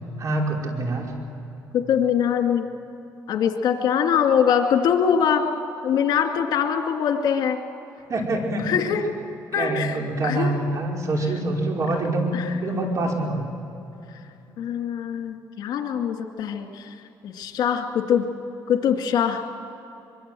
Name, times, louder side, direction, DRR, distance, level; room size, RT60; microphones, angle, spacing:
voice 1, 0.2-1.1 8.1-8.6 9.5-12.3 12.6-13.4, right 2 dB, 45° right, 1 dB, 4.9 m, -25 dB
voice 2, 1.7-2.6 3.3-5.4 5.8-7.6 8.6-9.0 9.5-10.0 10.2-10.7 12.3-12.5 14.6-16.9 17.2-18.3 18.7-19.4, left 8 dB, 70° left, 4 dB, 2.4 m, -23 dB
24.5 x 23.0 x 7.8 m, 2.9 s
cardioid pair, 95°, 7 cm